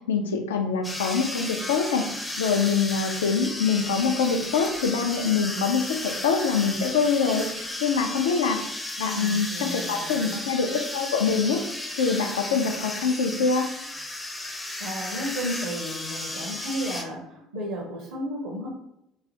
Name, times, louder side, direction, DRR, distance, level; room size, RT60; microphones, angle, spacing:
voice 1, 0.1-2.1 2.4-8.6 9.0-11.6 12.0-13.7, left 5 dB, 70° left, 5 dB, 0.3 m, -24 dB
sound 1, 0.8-17.0, left 1 dB, 15° left, 0.5 m, -34 dB
voice 2, 9.0-10.4 14.8-18.7, equal, 65° right, -1 dB, 0.5 m, -33 dB
3.1 x 2.3 x 2.6 m, 0.82 s
figure-of-eight pair, 60°, 0 cm